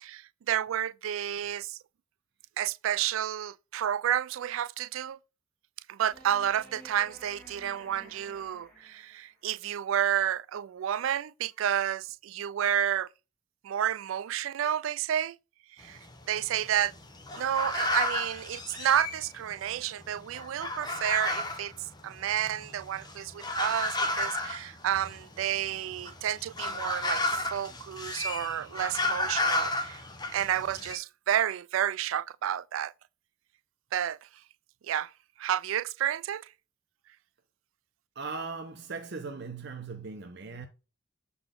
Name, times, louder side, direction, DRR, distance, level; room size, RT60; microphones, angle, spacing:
voice 1, 0.0-1.8 2.6-5.2 5.9-13.1 13.6-15.4 15.8-16.0 16.3-16.9 17.4-30.0 30.3-32.9 33.9-34.2 34.8-35.1 35.4-36.5, right 10 dB, 75° right, 0.3 m, -30 dB
sound 1, 6.1-9.4 12.1-12.2, right 1 dB, 5° left, 2.2 m, -53 dB
sound 2, 15.8-19.7 20.0-31.0, left 2 dB, 20° left, 0.8 m, -33 dB
voice 2, 38.1-40.7, right 4 dB, 55° right, 0.8 m, -38 dB
7.7 x 4.1 x 3.6 m
head